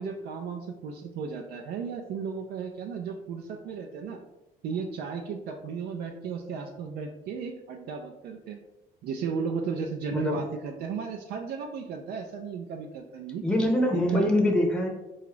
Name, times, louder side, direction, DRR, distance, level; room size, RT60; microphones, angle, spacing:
voice 1, 0.0-4.2 4.6-8.6 9.0-13.4 13.9-14.3, right 5 dB, 70° right, 3 dB, 0.4 m, -35 dB
voice 2, 10.1-10.4 13.4-14.9, left 1 dB, 5° left, 0 dB, 0.7 m, -24 dB
3.8 x 2.3 x 3.1 m, 0.97 s
cardioid pair, 110°, 17 cm